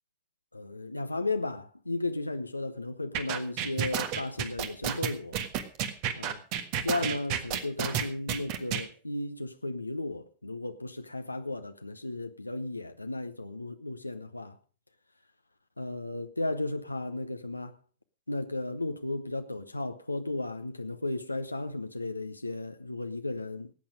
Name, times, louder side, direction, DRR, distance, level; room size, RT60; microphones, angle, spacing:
voice 1, 0.5-5.4 6.2-6.4 6.8-14.6 15.8-17.8 18.3-23.7, left 2 dB, 85° left, 0.7 m, -34 dB
sound 1, 3.1-8.8, right 9 dB, 45° right, 1.5 m, -31 dB
18.0 x 8.7 x 5.2 m
figure-of-eight pair, 90°, 0 cm